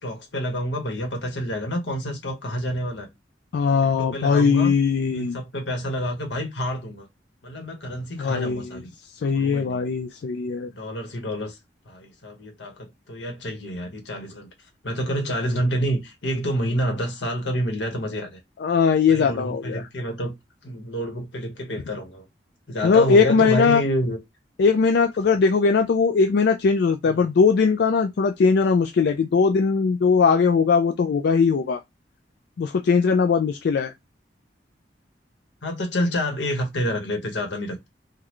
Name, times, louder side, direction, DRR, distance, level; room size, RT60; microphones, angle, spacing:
voice 1, 0.0-3.1 3.8-4.7 5.1-7.1 7.4-8.9 9.3-9.8 10.7-11.6 11.8-14.5 14.8-18.4 19.1-20.3 20.6-22.3 22.7-24.2 27.1-27.3 35.6-37.9, equal, 90° left, 1.3 m, -28 dB
voice 2, 3.5-5.4 8.2-8.8 9.2-10.7 18.6-19.8 22.8-23.8 24.6-31.8 32.6-33.9, left 5 dB, 65° left, 0.3 m, -20 dB
3.7 x 2.2 x 3.1 m
head